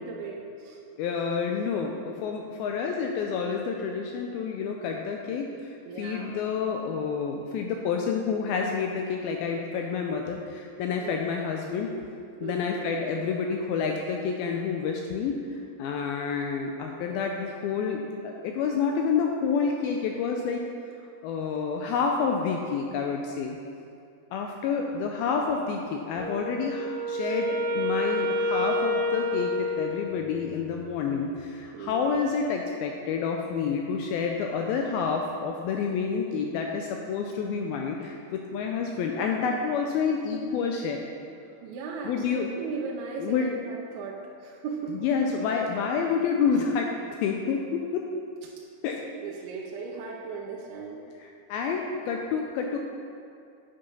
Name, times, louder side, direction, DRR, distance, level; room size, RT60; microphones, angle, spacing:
voice 1, 0.0-0.8 5.9-6.4 11.0-11.1 12.4-12.8 27.2-27.4 31.7-32.1 41.6-45.0 49.1-51.0, right 4 dB, 80° right, -2 dB, 2.6 m, -37 dB
voice 2, 1.0-5.5 6.0-11.9 12.4-15.4 15.8-20.6 21.2-23.6 24.3-41.1 42.1-42.5 43.2-43.5 44.9-46.9 47.2-48.1 48.8-49.1 51.2-52.8, left 5 dB, 85° left, 2 dB, 2.2 m, -29 dB
Wind instrument woodwind instrument, 26.2-30.5, left 1 dB, 65° right, 2.7 m, -29 dB
9.2 x 6.8 x 5.3 m, 2.5 s
omnidirectional pair, 4.8 m